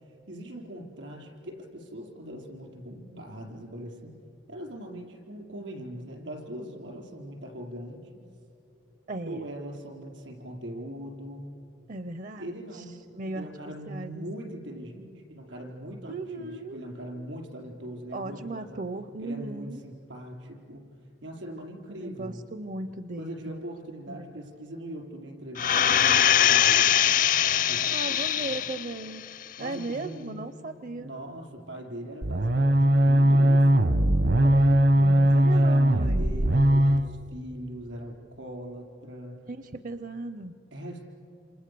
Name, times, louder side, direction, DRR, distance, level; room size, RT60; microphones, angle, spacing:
voice 1, 0.3-4.2 4.5-8.2 9.3-11.6 12.4-13.1 13.3-18.8 19.2-20.8 21.2-22.4 23.2-27.0 27.7-28.7 29.6-30.5 31.0-33.9 35.1-39.5 40.7-41.0, right 1 dB, 85° right, 1 dB, 4.6 m, -40 dB
voice 2, 9.1-9.5 11.9-12.5 12.7-12.8 13.1-13.5 13.9-14.5 16.1-16.8 18.1-19.8 21.9-23.6 24.1-24.3 27.9-29.3 29.6-31.1 34.4-36.2 39.5-40.5, right 2 dB, 45° right, 12 dB, 0.6 m, -37 dB
sound 1, 25.6-29.0 29.4-29.5, left 10 dB, 45° left, 0.6 m, -22 dB
sound 2, 32.2-37.1, right 1 dB, 65° right, 1.0 m, -20 dB
28.0 x 27.0 x 6.8 m, 2.7 s
head